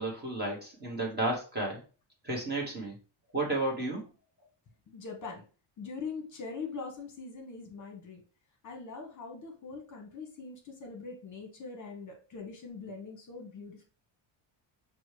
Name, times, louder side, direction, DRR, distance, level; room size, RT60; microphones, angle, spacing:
voice 1, 0.0-1.8 2.2-2.9 3.3-4.0, right 2 dB, 20° right, -2 dB, 1.1 m, -32 dB
voice 2, 4.9-5.4 5.8-8.2 8.6-13.8, left 4 dB, 35° left, 2 dB, 1.1 m, -42 dB
6.0 x 2.3 x 3.2 m, 0.35 s
cardioid pair, 160°, 49 cm